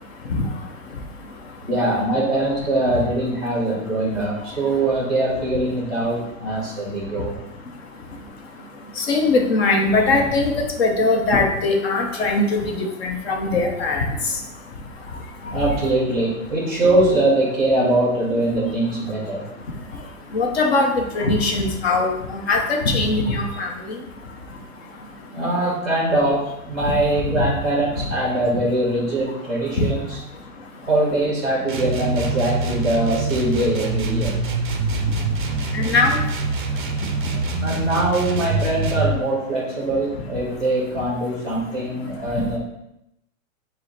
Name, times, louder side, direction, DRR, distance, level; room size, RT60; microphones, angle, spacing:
voice 1, 1.6-7.3 15.5-19.4 25.3-30.2 30.8-34.4 37.6-42.6, right 1 dB, ahead, -4 dB, 0.7 m, -22 dB
voice 2, 9.0-10.5 10.8-14.0 20.3-24.0 26.9-27.0 27.4-27.5 29.8-29.9 35.7-36.2, left 3 dB, 50° left, 2 dB, 0.7 m, -20 dB
sound 1, 31.7-39.2, right 3 dB, 40° right, 0.4 m, -25 dB
4.7 x 2.1 x 4.0 m, 0.85 s
hypercardioid pair, 165°, 41 cm